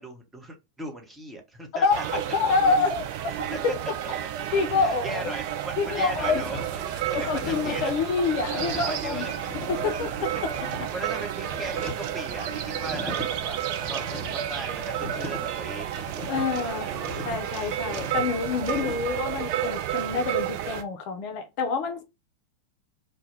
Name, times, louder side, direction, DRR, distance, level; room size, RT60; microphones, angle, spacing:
voice 1, 0.0-2.0 3.5-3.8 4.0-4.1 4.8-8.0 8.5-9.9 10.6-15.9 16.6-17.0, right 2 dB, 10° right, 0.8 m, -38 dB
voice 2, 1.7-3.1 4.5-5.2 5.8-6.4 7.1-9.3 9.7-10.3 16.3-22.0, left 4 dB, 45° left, 0.4 m, -27 dB
sound 1, 1.9-20.8, right 10 dB, 45° right, 0.4 m, -31 dB
sound 2, 6.1-19.4, left 2 dB, 20° left, 0.9 m, -40 dB
2.2 x 2.1 x 3.2 m
figure-of-eight pair, 90°, 0 cm